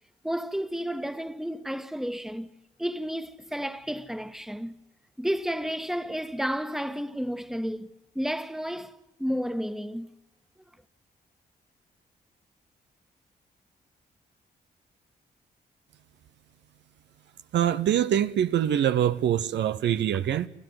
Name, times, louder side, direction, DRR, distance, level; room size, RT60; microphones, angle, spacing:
voice 1, 0.2-2.5 2.8-4.7 5.2-10.1, equal, ahead, 1.5 m, -32 dB
voice 2, 17.5-20.5, right 10 dB, 80° right, 0.8 m, -24 dB
26.0 x 14.5 x 9.6 m
supercardioid pair, 55°, 18 cm